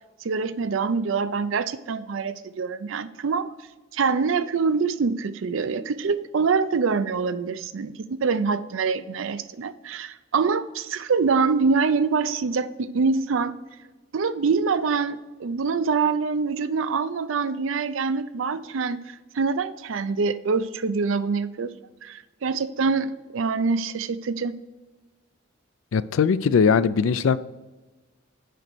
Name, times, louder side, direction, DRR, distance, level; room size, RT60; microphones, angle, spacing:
voice 1, 0.2-3.5 3.9-13.5 14.1-19.0 19.3-21.7 22.0-24.5, right 5 dB, 80° right, 14 dB, 0.5 m, -25 dB
voice 2, 25.9-27.4, left 6 dB, 85° left, 16 dB, 0.4 m, -20 dB
6.7 x 5.1 x 6.1 m, 1.2 s
head